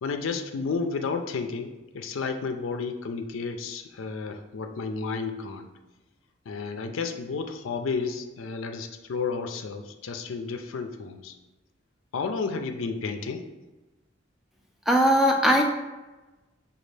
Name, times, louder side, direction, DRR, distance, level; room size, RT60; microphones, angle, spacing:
voice 1, 0.0-5.7 6.5-11.3 12.1-13.4, left 4 dB, 80° left, 6 dB, 0.4 m, -32 dB
voice 2, 14.9-15.6, equal, ahead, 1 dB, 0.3 m, -19 dB
6.0 x 2.4 x 3.3 m, 1.1 s
head